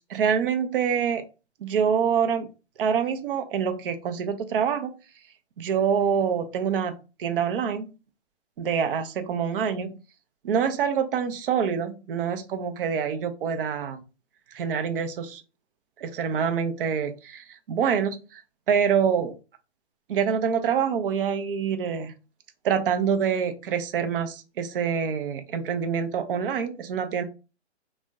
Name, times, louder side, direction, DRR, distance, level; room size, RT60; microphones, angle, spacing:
voice 1, 0.1-1.2 1.6-2.5 2.8-4.9 5.6-7.9 8.6-9.9 10.4-14.0 14.5-15.4 16.0-18.4 18.7-19.3 20.1-22.1 22.6-27.2, right 7 dB, 50° right, 8 dB, 0.5 m, -26 dB
2.5 x 2.1 x 3.4 m, 0.31 s
hypercardioid pair, 135°, 35 cm